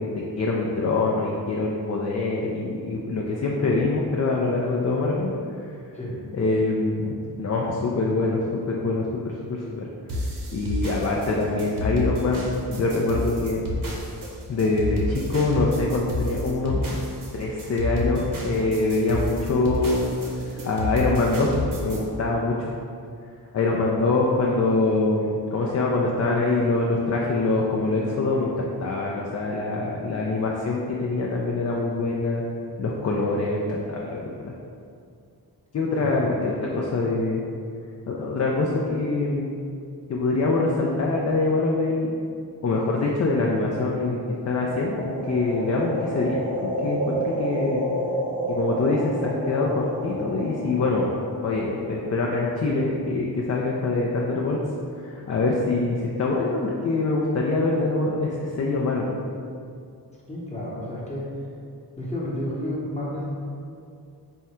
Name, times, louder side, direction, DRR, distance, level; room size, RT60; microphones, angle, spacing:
voice 1, 0.0-5.3 6.3-9.8 10.5-13.7 14.5-16.9 17.4-20.1 20.6-21.5 21.8-22.7 23.5-32.4 32.8-34.5 35.7-37.4 38.1-39.5 40.1-42.1 42.6-44.2 44.5-46.4 46.8-47.8 48.5-51.1 51.4-54.6 55.0-59.2, left 3 dB, 40° left, -2 dB, 0.4 m, -24 dB
sound 1, 10.1-22.0, left 1 dB, 55° right, 0.8 m, -29 dB
voice 2, 36.0-36.3 60.3-61.3 62.0-63.4, left 1 dB, 15° left, -6 dB, 0.9 m, -31 dB
sound 2, 44.4-52.4, right 1 dB, 15° right, 0.6 m, -30 dB
3.6 x 2.2 x 4.2 m, 2.4 s
wide cardioid pair, 90°, 40 cm